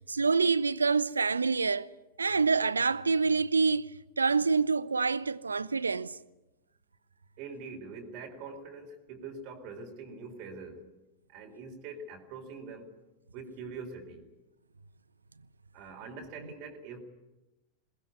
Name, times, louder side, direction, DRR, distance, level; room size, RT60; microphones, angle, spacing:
voice 1, 0.0-1.9 2.2-3.9 4.2-6.2, right 4 dB, 75° right, 0.8 m, -26 dB
voice 2, 7.4-10.8 11.3-13.0 13.3-14.2 15.7-17.0, right 4 dB, 45° right, 4.1 m, -43 dB
22.0 x 20.5 x 9.8 m
figure-of-eight pair, 90°, 0 cm